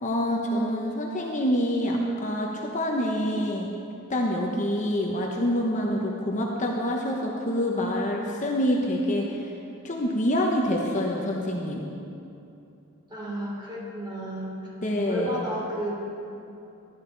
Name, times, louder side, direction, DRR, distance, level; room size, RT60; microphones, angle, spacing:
voice 1, 0.0-3.8 4.1-9.5 9.8-11.8 14.8-15.4, equal, 35° left, -1 dB, 1.0 m, -26 dB
voice 2, 13.1-14.7 15.1-16.0, equal, 20° right, -4 dB, 3.1 m, -32 dB
15.5 x 11.5 x 4.0 m, 2.7 s
head